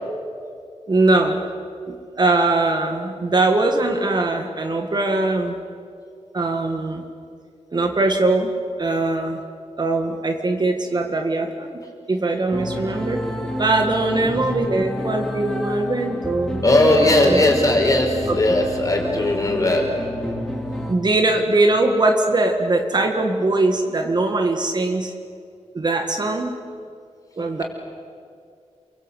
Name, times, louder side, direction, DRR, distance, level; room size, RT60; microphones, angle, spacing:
voice 1, 0.9-1.4 1.9-5.6 6.3-7.0 7.7-8.5 8.8-9.4 9.8-11.8 12.1-13.2 13.6-17.4 18.3-18.4 20.9-25.1 25.7-26.5 27.4-27.6, right 2 dB, 40° right, 4 dB, 1.8 m, -21 dB
sound 1, 12.5-20.9, left 1 dB, 5° left, 3.1 m, -29 dB
voice 2, 16.6-19.9, left 1 dB, 30° left, 1 dB, 5.1 m, -18 dB
28.0 x 24.0 x 8.3 m, 2.3 s
wide cardioid pair, 175°, 11 cm